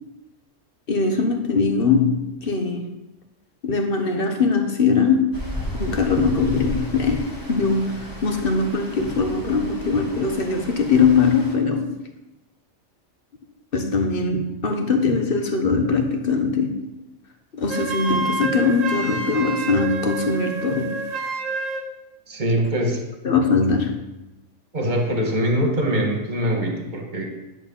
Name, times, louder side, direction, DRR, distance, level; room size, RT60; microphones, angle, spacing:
voice 1, 0.9-2.9 3.6-5.4 5.8-12.0 13.7-16.8 17.5-21.0 23.2-24.0, left 4 dB, 50° left, 5 dB, 1.2 m, -21 dB
Stream, 5.3-11.5, left 1 dB, 15° left, 1.9 m, -34 dB
Wind instrument woodwind instrument, 17.7-21.9, right 3 dB, 85° right, 1.4 m, -28 dB
voice 2, 22.3-23.0 24.7-27.2, equal, 35° right, 0 dB, 1.8 m, -23 dB
10.5 x 4.4 x 7.1 m, 0.98 s
omnidirectional pair, 1.3 m